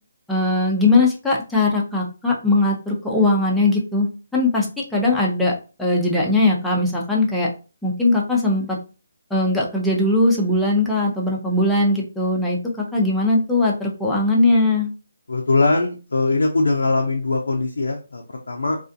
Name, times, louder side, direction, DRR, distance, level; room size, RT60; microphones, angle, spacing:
voice 1, 0.3-5.5 5.8-7.5 7.8-8.8 9.3-14.9, left 2 dB, 5° left, -4 dB, 0.5 m, -20 dB
voice 2, 15.3-18.8, left 3 dB, 75° left, 0 dB, 0.4 m, -21 dB
2.4 x 2.4 x 2.5 m, 0.33 s
figure-of-eight pair, 150°, 0 cm